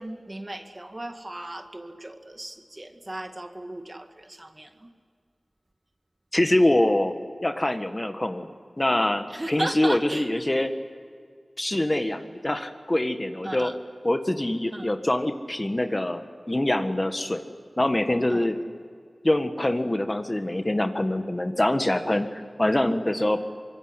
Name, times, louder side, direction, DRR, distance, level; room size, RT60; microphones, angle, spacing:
voice 1, 0.0-4.9 9.3-10.3 13.4-13.8 14.7-14.9 18.3-18.5 22.9-23.0, right 1 dB, 30° right, 6 dB, 2.2 m, -36 dB
voice 2, 6.3-7.1 7.4-8.5 8.8-10.7 11.6-13.7 14.0-16.2 16.5-17.4 17.8-18.6 19.2-23.4, left 1 dB, 30° left, 7 dB, 1.6 m, -24 dB
24.5 x 22.5 x 9.9 m, 2.1 s
wide cardioid pair, 45°, 0 cm